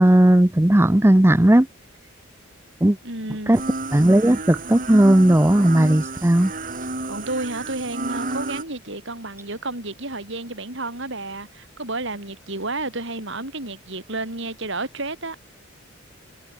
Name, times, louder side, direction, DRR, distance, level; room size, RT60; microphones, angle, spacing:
voice 1, 0.0-1.7 2.8-3.0 3.5-3.6 3.9-6.5, right 1 dB, 10° right, 0.6 m, -16 dB
voice 2, 3.0-3.6 7.1-15.4, right 2 dB, 60° right, 5.9 m, -31 dB
sound 1, 3.5-8.6, right 2 dB, 40° right, 7.2 m, -31 dB
head